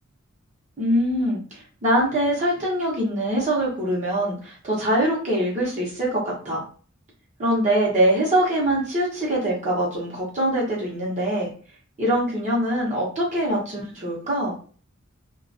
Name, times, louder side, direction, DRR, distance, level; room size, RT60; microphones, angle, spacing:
voice 1, 0.8-6.6 7.4-11.5 12.0-14.5, right 1 dB, 35° right, -4 dB, 0.8 m, -23 dB
2.4 x 2.3 x 2.5 m, 0.41 s
head